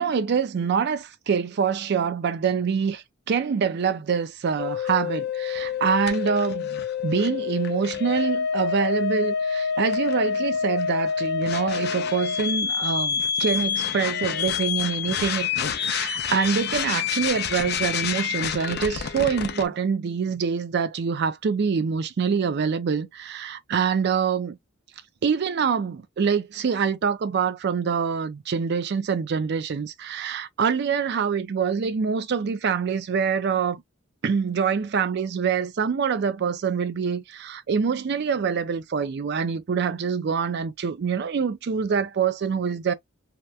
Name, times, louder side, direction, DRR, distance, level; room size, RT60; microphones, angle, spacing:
voice 1, 0.0-24.6 25.2-33.8 34.2-42.9, right 6 dB, 55° right, 0.4 m, -25 dB
sound 1, 4.6-19.7, left 7 dB, 55° left, 0.5 m, -27 dB
2.9 x 2.1 x 2.3 m
head